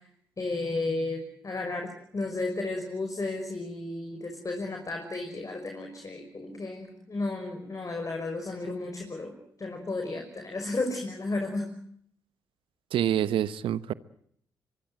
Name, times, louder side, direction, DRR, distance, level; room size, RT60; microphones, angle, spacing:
voice 1, 0.4-9.3 9.6-11.7, left 2 dB, 35° left, 4 dB, 5.6 m, -33 dB
voice 2, 12.9-13.9, right 10 dB, 70° right, 17 dB, 1.1 m, -26 dB
24.5 x 24.0 x 7.8 m, 0.67 s
hypercardioid pair, 40°, 9 cm